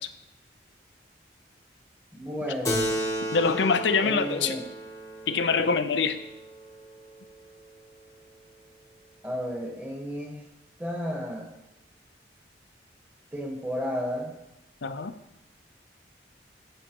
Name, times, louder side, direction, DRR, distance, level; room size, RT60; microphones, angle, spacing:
voice 1, 2.1-2.9 4.0-4.6 9.2-10.4 10.8-11.5 13.3-14.3, equal, 10° right, 1 dB, 1.3 m, -32 dB
Keyboard (musical), 2.6-7.5, equal, 15° left, 0.9 m, -34 dB
voice 2, 3.3-4.6 5.3-6.2 14.8-15.1, left 5 dB, 75° left, 10 dB, 0.6 m, -24 dB
14.5 x 6.3 x 3.0 m, 0.86 s
head